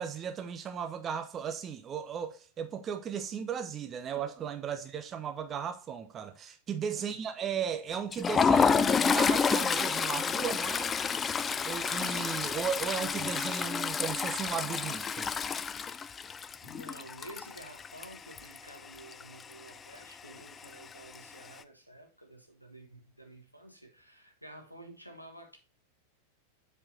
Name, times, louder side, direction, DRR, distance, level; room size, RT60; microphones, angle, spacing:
voice 1, 0.0-10.9 11.7-15.3, right 7 dB, 25° right, 0.7 m, -36 dB
Toilet flush, 7.9-18.7 19.0-19.2 19.5-19.7 20.6-21.2, left 6 dB, 20° left, 0.4 m, -29 dB
voice 2, 16.6-25.6, right 1 dB, 90° right, 1.4 m, -51 dB
7.7 x 4.5 x 4.2 m
figure-of-eight pair, 90°, 0 cm